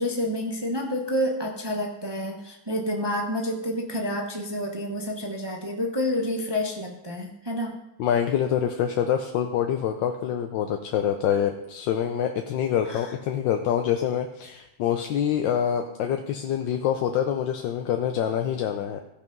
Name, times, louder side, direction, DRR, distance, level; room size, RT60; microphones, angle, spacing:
voice 1, 0.0-7.8 12.9-13.1, left 1 dB, 30° right, 1 dB, 0.4 m, -29 dB
voice 2, 8.0-19.0, left 9 dB, 70° left, 5 dB, 1.2 m, -26 dB
15.5 x 5.8 x 5.3 m, 0.88 s
omnidirectional pair, 2.4 m